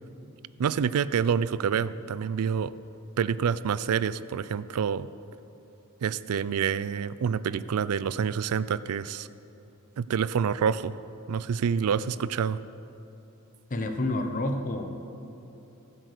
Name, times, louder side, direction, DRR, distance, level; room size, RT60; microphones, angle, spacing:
voice 1, 0.6-2.8 3.2-5.1 6.0-9.3 10.0-10.9 11.3-12.6, right 7 dB, 75° right, 17 dB, 0.4 m, -27 dB
voice 2, 13.7-15.1, left 1 dB, 35° left, 5 dB, 0.7 m, -29 dB
14.5 x 7.9 x 6.6 m, 2.9 s
head